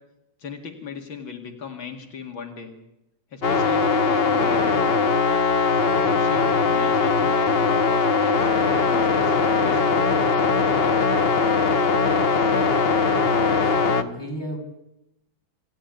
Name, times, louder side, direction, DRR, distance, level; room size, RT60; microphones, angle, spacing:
voice 1, 0.4-2.7 3.3-5.2 5.9-10.2, left 5 dB, 80° left, 3 dB, 3.0 m, -37 dB
sound 1, 3.4-14.0, left 5 dB, 40° left, 1.0 m, -20 dB
voice 2, 13.2-14.6, equal, 10° left, 0 dB, 6.6 m, -35 dB
26.5 x 14.0 x 9.4 m, 0.89 s
omnidirectional pair, 2.2 m